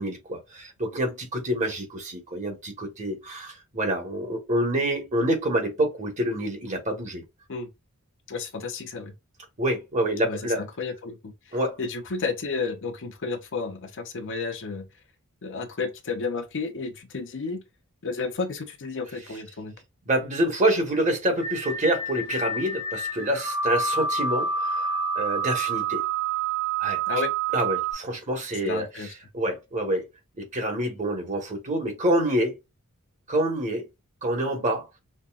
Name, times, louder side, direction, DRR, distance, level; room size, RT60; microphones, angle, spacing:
voice 1, 0.0-7.2 9.6-10.6 11.5-11.8 20.1-24.9 25.1-26.0 26.8-27.0 27.5-28.9 29.3-30.1 30.4-32.6 33.3-33.9 34.2-34.9, right 1 dB, 35° right, 1.3 m, -27 dB
voice 2, 8.3-9.1 10.2-14.9 15.4-17.6 18.0-19.7 27.1-27.3 28.6-29.1, left 4 dB, 60° left, 0.7 m, -32 dB
sound 1, 21.4-27.9, right 4 dB, 55° right, 1.5 m, -28 dB
5.3 x 2.2 x 2.4 m
head